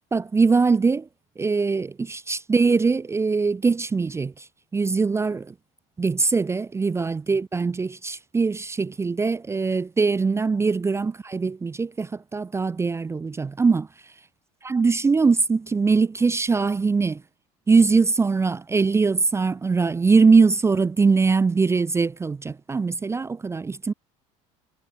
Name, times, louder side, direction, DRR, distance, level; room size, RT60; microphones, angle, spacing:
voice 1, 0.1-1.1 1.4-4.5 4.7-5.5 6.0-13.9 14.6-17.2 17.7-23.9, right 4 dB, 15° right, 0.4 m, -22 dB
supercardioid pair, 90°, 17 cm